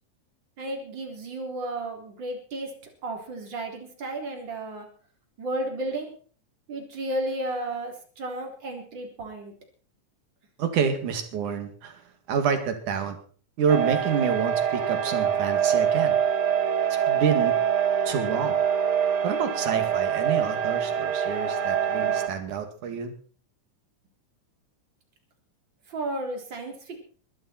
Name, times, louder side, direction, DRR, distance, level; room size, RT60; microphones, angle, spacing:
voice 1, 0.6-2.7 3.0-4.9 5.4-6.1 6.7-9.5 25.9-27.0, right 1 dB, 35° right, 2 dB, 4.1 m, -33 dB
voice 2, 10.6-12.0 12.3-13.2 13.6-16.2 17.1-17.6 18.1-18.6 19.2-23.1, right 7 dB, 70° right, 7 dB, 3.7 m, -28 dB
sound 1, 13.7-22.3, right 8 dB, 50° right, 2.1 m, -25 dB
21.5 x 12.5 x 4.4 m, 0.43 s
omnidirectional pair, 3.6 m